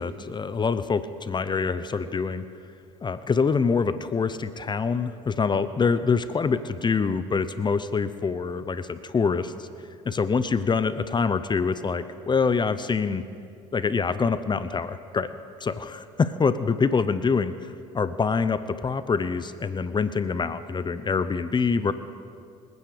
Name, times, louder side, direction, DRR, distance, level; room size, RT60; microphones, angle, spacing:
voice 1, 0.0-2.4 3.0-9.7 10.0-13.2 13.7-15.3 15.6-21.9, left 5 dB, 30° left, 13 dB, 0.7 m, -25 dB
27.0 x 9.4 x 5.1 m, 2.4 s
hypercardioid pair, 70°, 16 cm